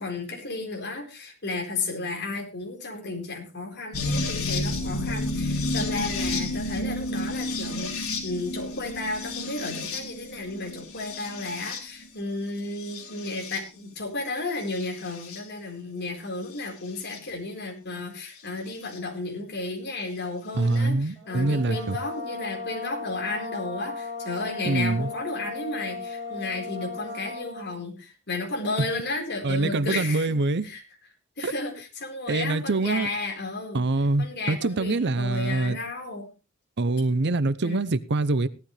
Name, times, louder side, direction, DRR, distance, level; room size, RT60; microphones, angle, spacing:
voice 1, 0.0-30.4 30.6-30.8 31.4-33.8 34.2-36.3 37.6-37.8, left 2 dB, 50° left, 4.4 m, -33 dB
sound 1, 3.9-12.1 12.8-13.6 14.7-15.4 17.1-17.2 18.9-19.0, left 2 dB, 75° left, 3.6 m, -30 dB
voice 2, 20.5-22.0 24.7-25.1 29.4-30.7 31.4-31.5 32.3-33.1 33.7-35.8 36.8-38.5, right 2 dB, 55° right, 0.7 m, -24 dB
sound 2, 21.2-27.8, left 3 dB, 20° right, 6.9 m, -36 dB
17.0 x 12.0 x 3.3 m
head